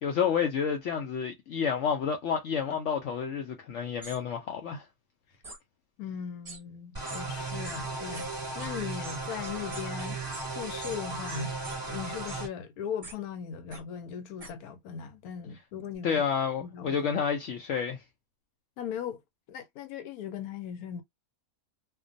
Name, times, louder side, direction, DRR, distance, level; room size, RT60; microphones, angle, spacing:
voice 1, 0.0-4.9 16.0-18.0, left 7 dB, 70° left, 0.8 m, -29 dB
sound 1, 4.0-4.2 5.4-5.6 6.4-6.6 7.1-7.2 7.6-7.8 8.1-8.2 8.6-8.7 9.0-10.5 10.8-11.0 11.3-11.8 12.3-12.4 13.0-13.1 13.7-13.8 14.4-14.5, right 2 dB, 30° right, 0.8 m, -44 dB
voice 2, 6.0-8.3 8.5-10.2 10.5-11.5 11.8-16.2 16.6-17.0 18.8-19.2 19.5-21.0, left 8 dB, 85° left, 1.1 m, -38 dB
sound 2, 6.9-12.5, right 3 dB, 15° right, 1.2 m, -36 dB
2.4 x 2.2 x 2.5 m
omnidirectional pair, 1.5 m